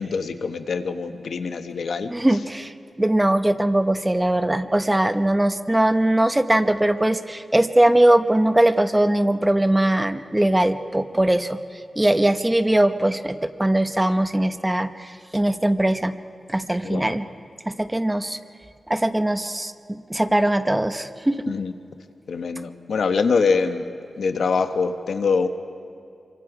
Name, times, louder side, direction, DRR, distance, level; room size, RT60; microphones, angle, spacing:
voice 1, 0.0-2.1 16.8-17.2 21.5-21.7 22.3-23.9 24.2-25.5, left 5 dB, 80° left, 8 dB, 1.1 m, -24 dB
voice 2, 2.1-11.6 12.0-16.2 16.5-17.3 17.7-18.4 18.9-21.6, right 1 dB, 15° right, 10 dB, 0.8 m, -21 dB
27.0 x 24.5 x 4.9 m, 2.5 s
wide cardioid pair, 95°, 0 cm